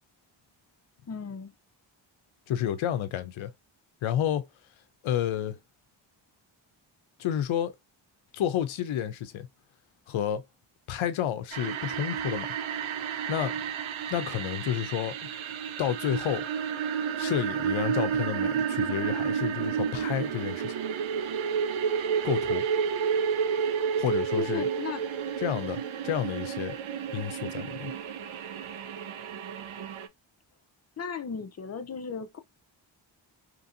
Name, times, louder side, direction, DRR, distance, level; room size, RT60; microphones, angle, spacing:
voice 1, 1.1-1.5 24.4-25.0 31.0-32.4, left 6 dB, 35° left, 0.6 m, -36 dB
voice 2, 2.5-3.5 4.0-4.5 5.0-5.6 7.2-7.7 8.3-9.5 10.1-10.4 10.9-12.5 13.3-13.6 14.1-15.2 15.8-16.4 17.2-20.7 22.2-22.6 24.0-24.7 25.4-26.8 27.1-27.9, left 10 dB, 90° left, 0.6 m, -30 dB
sound 1, 11.5-30.1, right 7 dB, 80° right, 0.6 m, -31 dB
3.0 x 2.6 x 2.5 m
cardioid pair, 75°, 47 cm